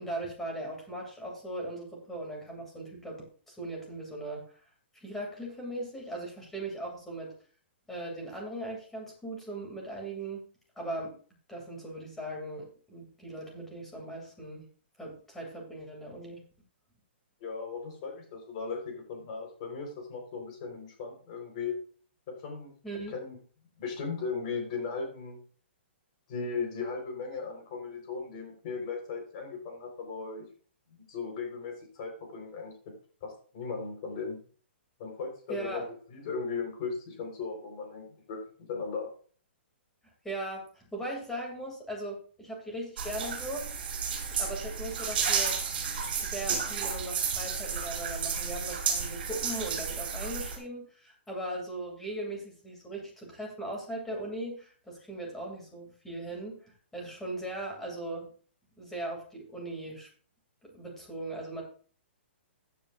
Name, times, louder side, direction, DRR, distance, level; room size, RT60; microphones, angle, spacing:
voice 1, 0.0-4.4 4.9-7.3 7.9-10.4 10.8-11.1 11.5-14.7 15.0-16.4 22.8-23.1 35.5-35.8 40.2-43.7 44.3-45.6 46.2-56.6 56.9-58.3 58.8-60.1 60.7-61.6, right 1 dB, 5° left, -1 dB, 2.8 m, -39 dB
voice 2, 17.4-21.7 22.3-22.7 23.1-23.4 23.8-25.4 26.3-30.4 31.1-32.9 33.2-34.4 35.0-38.4 38.7-39.1, left 5 dB, 35° left, 2 dB, 4.4 m, -37 dB
sound 1, 43.0-50.6, right 6 dB, 50° right, 6.0 m, -32 dB
15.5 x 9.3 x 2.6 m, 0.42 s
hypercardioid pair, 170°, 6 cm